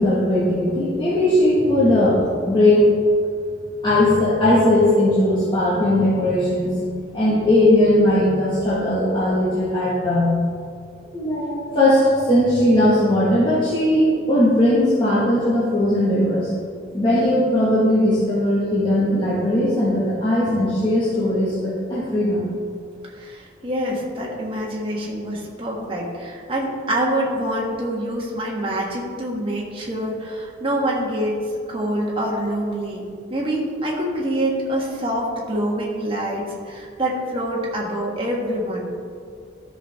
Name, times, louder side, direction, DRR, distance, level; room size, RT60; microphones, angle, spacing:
voice 1, 0.0-2.8 3.8-10.3 11.1-16.5 16.9-22.5, left 1 dB, 25° left, -10 dB, 1.6 m, -18 dB
voice 2, 23.1-38.9, right 1 dB, 30° right, -3 dB, 1.5 m, -26 dB
12.5 x 6.0 x 3.6 m, 2.3 s
head